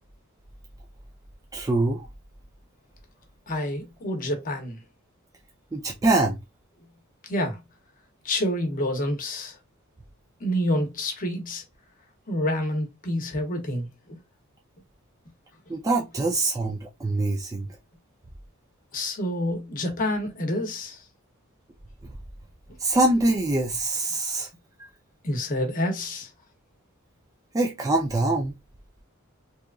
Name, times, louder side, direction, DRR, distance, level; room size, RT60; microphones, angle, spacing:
voice 1, 1.5-2.1 5.7-6.4 15.7-17.7 22.8-24.5 24.8-24.9 27.5-28.6, right 2 dB, 15° right, 0.3 m, -24 dB
voice 2, 3.5-4.8 7.3-7.6 8.2-9.6 10.4-11.6 12.3-14.2 18.9-21.0 25.2-26.3, left 1 dB, 40° left, 0.7 m, -28 dB
2.9 x 2.3 x 2.3 m
head